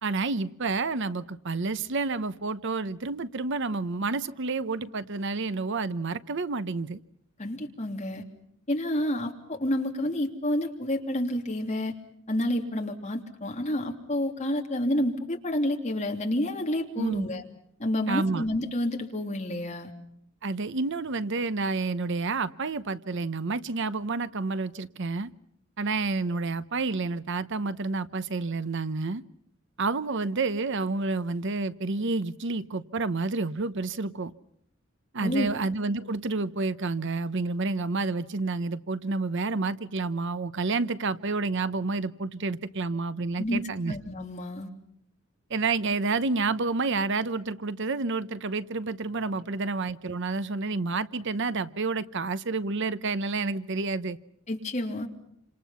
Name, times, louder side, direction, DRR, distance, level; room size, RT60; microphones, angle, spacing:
voice 1, 0.0-7.0 17.0-17.3 18.1-18.4 20.4-25.3 25.8-29.2 29.8-34.3 35.1-43.9 45.5-54.2, right 3 dB, 60° right, 0.9 m, -29 dB
voice 2, 7.4-8.2 8.7-12.0 12.3-17.4 17.8-19.9 35.2-35.5 43.4-43.6 43.9-44.7 54.5-55.1, left 1 dB, 35° left, 3.1 m, -29 dB
29.0 x 26.5 x 5.7 m
head